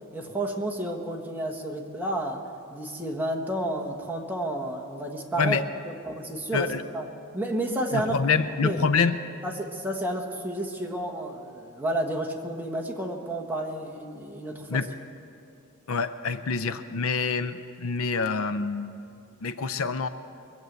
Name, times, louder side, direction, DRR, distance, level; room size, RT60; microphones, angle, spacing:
voice 1, 0.1-2.4 2.7-5.6 5.8-7.1 7.3-8.1 8.6-8.8 9.4-14.8, right 1 dB, 10° right, 1 dB, 1.3 m, -31 dB
voice 2, 7.9-9.2 14.7-14.9 15.9-19.0 19.4-20.1, left 5 dB, 70° left, 11 dB, 0.6 m, -26 dB
22.5 x 7.6 x 8.0 m, 2.5 s
head